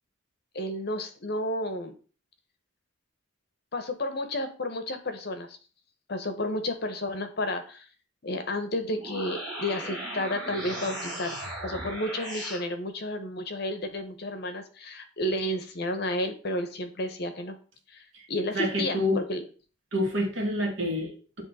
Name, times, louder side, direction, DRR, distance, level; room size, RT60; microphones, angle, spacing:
voice 1, 0.5-2.0 3.7-5.6 6.1-7.9 8.2-11.4 11.6-17.6 17.9-19.4, left 1 dB, 55° left, 7 dB, 0.8 m, -32 dB
sound 1, 8.8-12.6, right 1 dB, ahead, 3.6 m, -37 dB
voice 2, 18.5-19.2 19.9-21.4, left 1 dB, 75° right, 2 dB, 1.6 m, -28 dB
8.0 x 3.0 x 4.1 m, 0.38 s
head